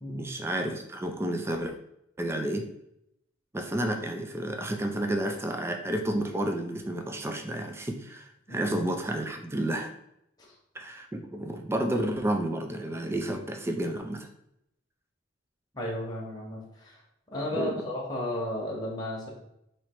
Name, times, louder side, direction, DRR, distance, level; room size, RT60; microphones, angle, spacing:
voice 1, 0.1-1.7 2.2-2.7 3.5-9.9 10.7-14.3 17.5-17.8, right 1 dB, 10° right, 5 dB, 0.3 m, -31 dB
voice 2, 8.5-8.8 10.4-10.5 15.7-17.0 17.3-19.3, left 1 dB, 20° left, -4 dB, 0.9 m, -34 dB
3.1 x 2.8 x 4.4 m, 0.78 s
head